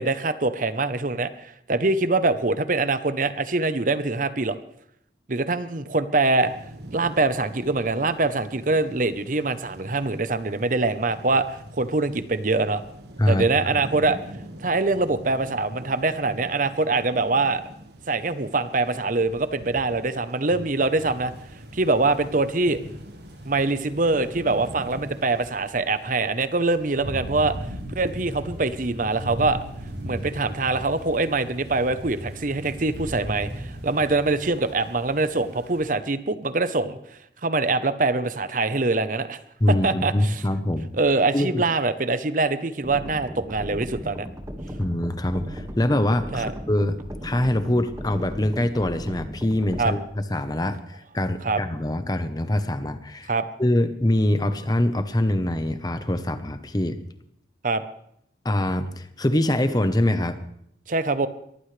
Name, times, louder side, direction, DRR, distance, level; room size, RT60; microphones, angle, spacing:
voice 1, 0.0-4.6 5.3-6.5 6.9-12.8 13.3-14.2 14.6-17.6 18.1-21.3 21.7-22.8 23.4-27.5 27.9-29.6 30.0-39.4 39.7-40.3 41.0-44.3 46.3-46.5 49.8-49.9 51.4-51.6 53.3-53.5 57.6-57.8 60.9-61.3, right 3 dB, 45° right, 12 dB, 0.9 m, -24 dB
sound 1, 6.4-25.5, right 1 dB, 65° right, 1.5 m, -43 dB
sound 2, 20.9-35.8, right 1 dB, 85° right, 7.0 m, -38 dB
voice 2, 39.6-40.9 41.3-41.6 44.7-47.0 47.2-50.0 50.3-53.3 53.6-57.0 58.4-60.4, left 1 dB, 20° left, 10 dB, 1.0 m, -24 dB
sound 3, 42.8-49.8, equal, 20° right, 1.8 m, -37 dB
22.5 x 15.0 x 3.3 m, 0.74 s
head